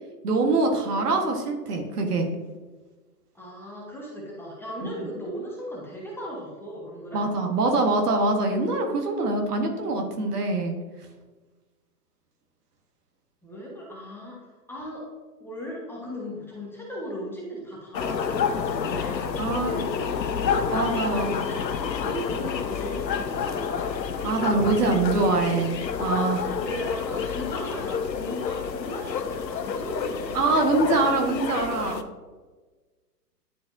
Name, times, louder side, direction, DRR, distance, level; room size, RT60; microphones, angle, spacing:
voice 1, 0.2-2.3 7.1-10.8 19.4-19.8 20.7-21.3 24.2-26.5 30.3-32.0, right 3 dB, 65° right, 3 dB, 1.5 m, -24 dB
voice 2, 3.3-7.2 13.4-14.4 14.7-15.0 15.4-24.0 26.4-31.1, equal, 5° left, -4 dB, 1.2 m, -37 dB
sound 1, 17.9-32.0, left 6 dB, 90° left, 0.7 m, -29 dB
10.0 x 4.2 x 2.7 m, 1.3 s
hypercardioid pair, 125°, 49 cm